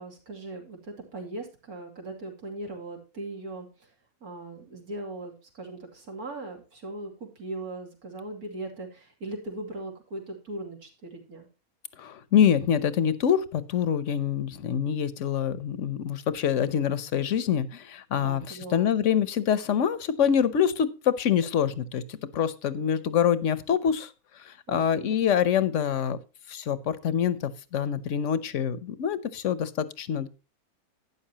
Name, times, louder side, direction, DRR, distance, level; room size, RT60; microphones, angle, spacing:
voice 1, 0.0-3.9 4.2-11.5 18.2-18.9 24.7-24.9, right 2 dB, 80° right, 1 dB, 3.2 m, -39 dB
voice 2, 12.0-24.1 24.4-26.2 26.5-30.3, left 8 dB, 60° left, 16 dB, 1.1 m, -25 dB
12.0 x 9.5 x 2.9 m, 0.30 s
omnidirectional pair, 1.6 m